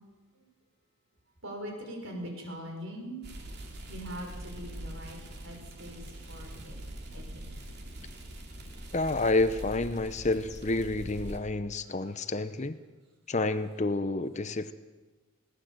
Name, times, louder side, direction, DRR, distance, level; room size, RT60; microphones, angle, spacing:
voice 1, 1.4-3.2 3.9-6.8 7.1-7.5 11.8-11.9, equal, 65° right, 1 dB, 6.3 m, -42 dB
sound 1, 3.2-11.4, right 1 dB, 50° right, 3.1 m, -43 dB
voice 2, 8.9-12.8 13.3-14.7, left 2 dB, 30° left, 12 dB, 0.7 m, -29 dB
21.5 x 17.5 x 7.7 m, 1.3 s
head